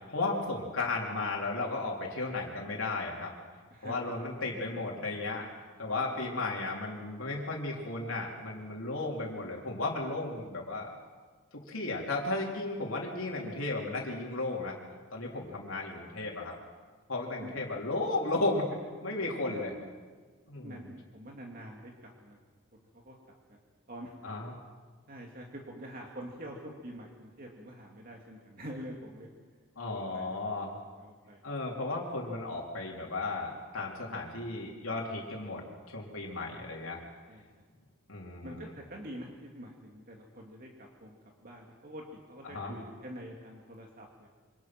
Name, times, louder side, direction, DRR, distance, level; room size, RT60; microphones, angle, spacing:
voice 1, 0.1-3.3 3.8-5.5 5.8-10.9 11.7-14.8 15.1-16.5 17.1-18.7 19.0-19.7 20.5-20.8 24.2-24.5 29.8-30.8 31.4-35.6 35.9-37.0 38.1-38.6 42.4-42.7, left 2 dB, 75° left, -2 dB, 3.6 m, -34 dB
voice 2, 3.7-4.1 4.4-4.6 7.3-7.4 17.1-17.5 19.5-19.6 20.6-22.4 22.9-23.1 23.9-24.1 25.1-29.3 29.8-30.3 31.0-31.7 33.0-33.1 37.3-37.4 38.4-41.2 41.4-44.3, equal, 45° right, 0 dB, 2.7 m, -46 dB
27.0 x 25.5 x 6.1 m, 1.5 s
head